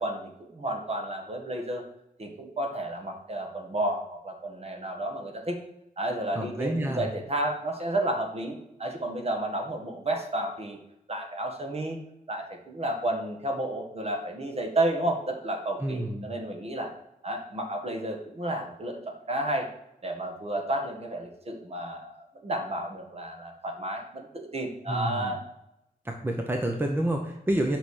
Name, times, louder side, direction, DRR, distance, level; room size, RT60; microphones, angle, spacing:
voice 1, 0.0-1.8 2.2-5.6 6.0-10.8 11.1-12.0 12.3-16.9 17.2-19.7 20.0-25.4, right 1 dB, 45° right, 3 dB, 1.8 m, -31 dB
voice 2, 6.4-7.1 15.8-16.2 24.9-25.3 26.0-27.8, right 1 dB, 15° right, 3 dB, 0.9 m, -28 dB
8.7 x 6.0 x 6.5 m, 0.84 s
wide cardioid pair, 155°, 15 cm